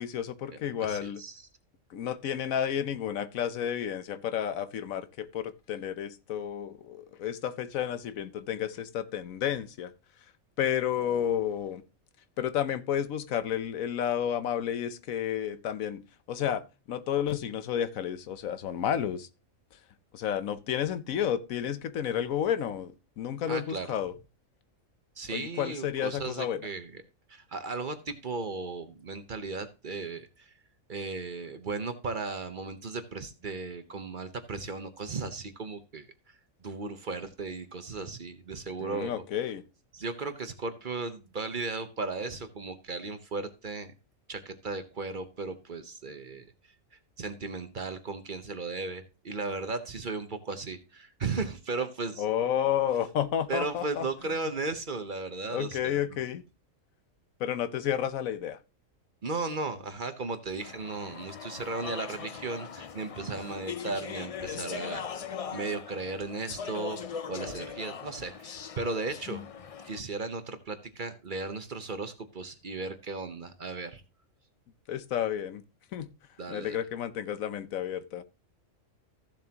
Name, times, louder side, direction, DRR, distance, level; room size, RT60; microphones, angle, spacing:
voice 1, 0.0-1.2 1.9-9.9 10.6-11.8 12.4-16.6 16.9-19.3 20.1-24.2 25.3-26.6 38.8-39.6 52.2-54.1 55.5-56.4 57.4-58.6 69.3-69.5 74.9-75.6 75.9-76.1 76.5-78.2, left 9 dB, 85° left, 1.2 m, -31 dB
voice 2, 0.8-1.5 23.5-23.9 25.2-27.0 27.3-30.5 30.9-39.3 39.9-43.9 44.3-46.5 47.2-52.2 53.5-56.0 59.2-65.3 65.5-69.4 69.8-74.0 76.4-76.8, right 3 dB, 40° right, 0.9 m, -36 dB
Speech / Chatter, 60.6-70.0, left 7 dB, 60° left, 0.3 m, -40 dB
14.5 x 7.3 x 2.9 m
omnidirectional pair, 1.4 m